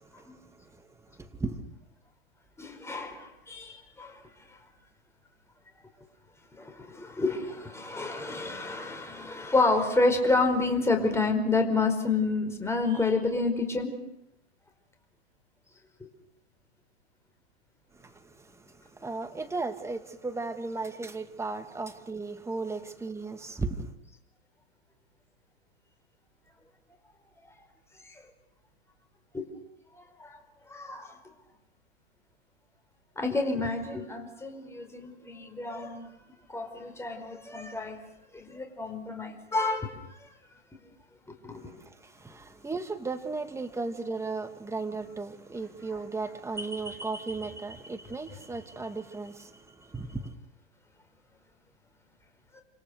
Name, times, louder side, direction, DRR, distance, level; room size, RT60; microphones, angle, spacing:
voice 1, 0.0-1.6 17.9-23.9 41.5-50.3, right 3 dB, 10° right, 2.5 m, -36 dB
voice 2, 2.6-4.2 6.6-13.9 29.3-29.5 29.9-30.4 30.7-31.1 33.2-36.1 36.5-38.0 38.3-40.3 41.4-41.7 52.5-52.6, left 3 dB, 10° left, 5.1 m, -29 dB
28.5 x 27.0 x 6.6 m
hypercardioid pair, 110°, 33 cm